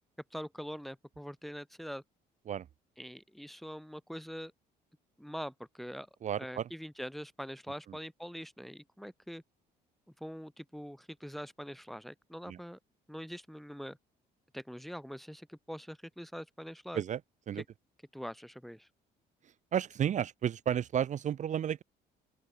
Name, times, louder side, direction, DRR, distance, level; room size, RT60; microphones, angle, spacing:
voice 1, 0.3-2.0 3.0-4.5 5.2-6.1 6.4-9.4 10.2-12.8 13.1-14.0 14.5-17.0 18.1-18.9, equal, ahead, 1.6 m, -43 dB
voice 2, 6.2-6.7 12.5-12.6 16.9-17.2 17.5-17.6 19.7-21.8, right 9 dB, 45° right, 0.9 m, -32 dB
open air
cardioid pair, 110°, 17 cm